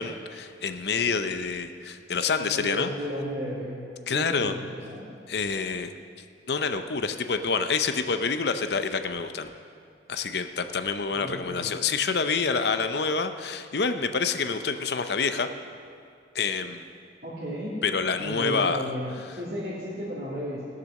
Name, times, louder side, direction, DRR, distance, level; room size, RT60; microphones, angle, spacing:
voice 1, 0.0-2.9 4.1-4.5 5.3-5.9 6.5-9.5 10.1-15.5 16.3-16.9 17.8-18.9, left 5 dB, 65° left, 9 dB, 0.6 m, -27 dB
voice 2, 2.3-3.8 4.1-5.1 11.1-11.7 17.2-17.7 18.2-20.6, equal, 60° right, -9 dB, 2.4 m, -34 dB
16.5 x 6.8 x 6.4 m, 2.3 s
head